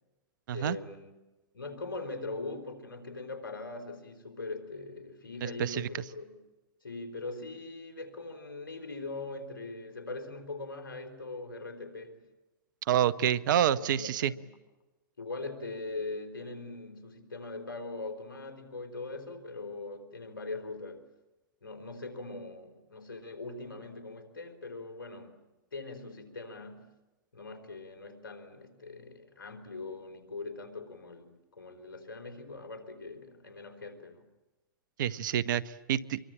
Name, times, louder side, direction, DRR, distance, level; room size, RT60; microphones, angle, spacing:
voice 1, 0.5-1.2 1.5-6.4 6.8-12.3 13.7-14.5 15.2-21.1 21.6-25.4 25.7-26.9 27.3-34.3, left 3 dB, 85° left, 8 dB, 3.9 m, -41 dB
voice 2, 5.4-5.9 12.9-14.3 35.0-36.2, right 10 dB, 65° right, 16 dB, 1.0 m, -28 dB
25.5 x 23.0 x 8.8 m, 1.1 s
hypercardioid pair, 110°, 11 cm